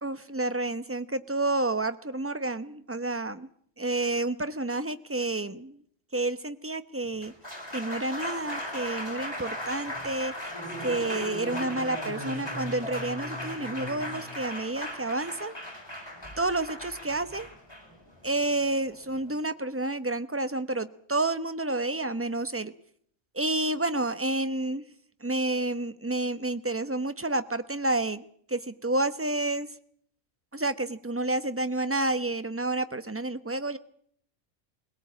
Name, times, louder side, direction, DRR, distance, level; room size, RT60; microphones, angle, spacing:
voice 1, 0.0-3.5 3.8-5.8 6.1-7.3 7.7-10.3 10.8-15.5 16.4-17.5 18.2-22.7 23.3-24.8 25.2-29.7 30.5-33.8, right 2 dB, 15° right, 12 dB, 0.8 m, -30 dB
Applause, 7.0-19.3, left 1 dB, 20° left, 5.4 m, -37 dB
21.5 x 17.5 x 8.5 m, 0.63 s
omnidirectional pair, 1.3 m